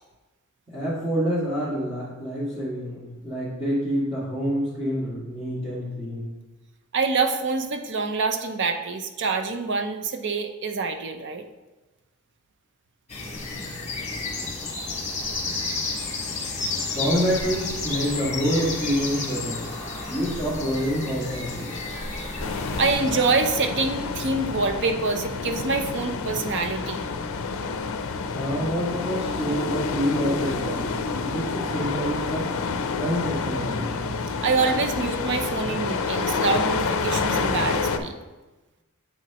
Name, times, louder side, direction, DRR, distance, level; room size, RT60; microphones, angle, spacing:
voice 1, 0.7-6.3 16.8-19.7 20.1-21.7 28.3-31.0 31.3-32.5 33.0-34.1, equal, 15° right, -11 dB, 2.0 m, -27 dB
voice 2, 6.9-11.4 22.8-27.1 34.4-38.2, right 4 dB, 55° right, 7 dB, 0.6 m, -25 dB
sound 1, 13.1-22.9, left 3 dB, 30° left, 1.3 m, -31 dB
sound 2, 22.4-38.0, left 4 dB, 65° left, 0.5 m, -28 dB
7.8 x 6.0 x 2.9 m, 1.1 s
head